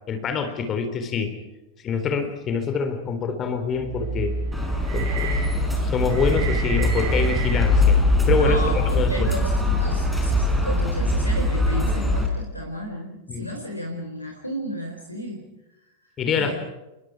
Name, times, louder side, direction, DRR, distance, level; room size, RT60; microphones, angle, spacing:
voice 1, 0.1-1.3 1.8-4.3 4.9-8.0 8.3-9.3 13.3-13.5 16.2-16.5, left 5 dB, 30° left, 7 dB, 3.6 m, -26 dB
sound 1, 3.7-9.0, right 3 dB, 55° right, 6.5 m, -29 dB
sound 2, 4.5-12.3, left 1 dB, ahead, 5.5 m, -22 dB
voice 2, 8.4-15.4 16.3-16.5, equal, 85° left, 2 dB, 4.1 m, -33 dB
27.5 x 23.5 x 4.9 m, 1.0 s
figure-of-eight pair, 90°, 0 cm